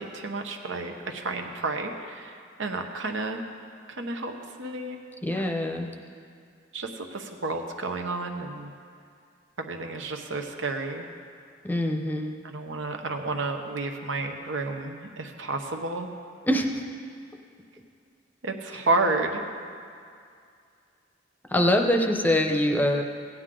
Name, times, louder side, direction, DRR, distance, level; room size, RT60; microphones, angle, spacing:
voice 1, 0.0-3.4 3.9-4.3 4.6-5.0 5.3-5.7 6.7-8.7 9.6-11.1 12.4-16.1 18.4-19.4, right 3 dB, 90° right, 4 dB, 1.0 m, -31 dB
voice 2, 5.2-5.9 11.6-12.4 16.5-16.8 21.5-23.0, left 1 dB, 10° left, 3 dB, 0.7 m, -24 dB
16.0 x 9.4 x 3.8 m, 2.3 s
head